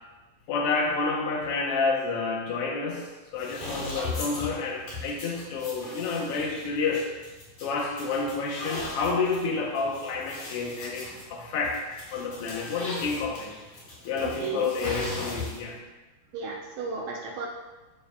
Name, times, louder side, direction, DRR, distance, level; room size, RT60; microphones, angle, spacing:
voice 1, 0.5-7.1 7.6-11.8 12.1-13.5 14.0-15.8, left 4 dB, 85° left, -1 dB, 1.3 m, -29 dB
sound 1, 3.3-15.8, left 2 dB, 55° left, 3.8 m, -39 dB
voice 2, 14.2-14.7 16.3-17.5, right 4 dB, 75° right, -1 dB, 1.7 m, -34 dB
12.0 x 5.6 x 2.2 m, 1.2 s
omnidirectional pair, 3.7 m